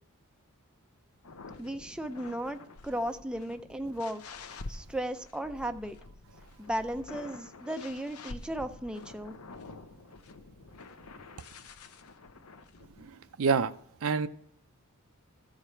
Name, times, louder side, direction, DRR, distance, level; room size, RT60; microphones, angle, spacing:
sound 1, 1.2-13.1, left 3 dB, 80° left, 0.7 m, -48 dB
voice 1, 1.6-4.2 4.7-6.0 6.6-9.3, equal, 5° right, 0.4 m, -35 dB
voice 2, 13.0-13.7 14.0-14.3, right 5 dB, 70° right, 0.5 m, -27 dB
14.0 x 4.9 x 5.6 m
head